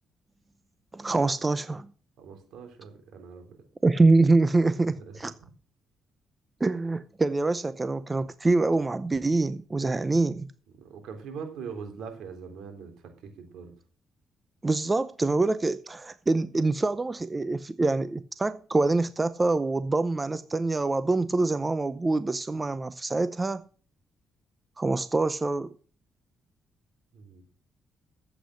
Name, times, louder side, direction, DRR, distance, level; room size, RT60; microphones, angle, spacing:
voice 1, 0.9-1.9 3.8-5.3 6.6-10.5 14.6-23.6 24.8-25.7, right 3 dB, 20° right, 0.6 m, -25 dB
voice 2, 2.2-3.6 5.0-5.1 10.8-13.7 27.1-27.4, right 6 dB, 80° right, 3.6 m, -42 dB
11.5 x 8.3 x 6.4 m
cardioid pair, 90°, 0 cm